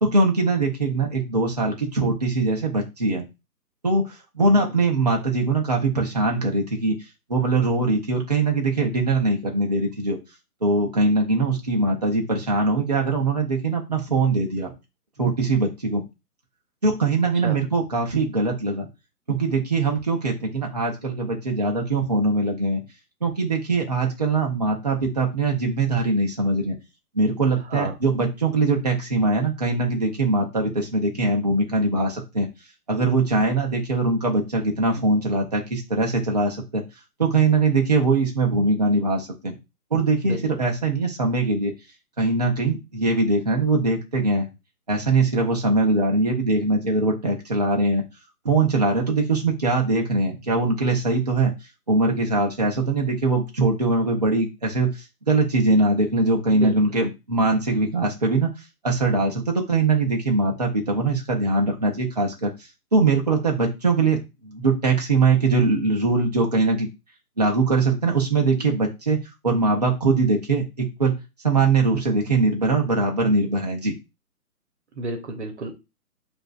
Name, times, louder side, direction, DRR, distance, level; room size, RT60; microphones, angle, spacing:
voice 1, 0.0-3.2 3.8-4.0 4.3-6.9 7.3-10.2 10.6-14.7 15.2-16.0 16.8-18.9 19.3-22.8 23.2-26.8 27.2-32.5 32.9-36.8 37.2-39.6 39.9-41.7 42.2-44.5 44.9-48.0 48.4-51.5 51.9-54.9 55.3-58.5 58.8-62.5 62.9-66.9 67.4-69.2 69.4-71.1 71.4-73.9, right 3 dB, 25° right, 0 dB, 0.6 m, -22 dB
voice 2, 75.0-75.8, right 2 dB, 45° right, 4 dB, 1.1 m, -31 dB
7.6 x 2.6 x 2.4 m, 0.26 s
hypercardioid pair, 165°, 47 cm